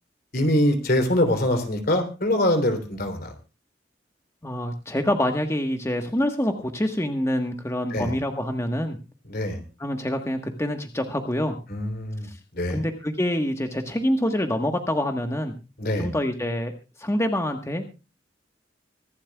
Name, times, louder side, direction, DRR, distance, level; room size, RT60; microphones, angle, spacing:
voice 1, 0.3-3.3 7.9-8.1 9.3-9.6 11.7-12.3 12.5-12.8 15.8-16.1, left 1 dB, 55° left, 7 dB, 3.2 m, -23 dB
voice 2, 4.4-9.0 9.8-11.6 12.3-12.4 12.7-15.5 16.0-16.7 17.0-17.8, left 1 dB, 15° left, 5 dB, 1.3 m, -26 dB
24.5 x 11.5 x 2.3 m, 0.31 s
head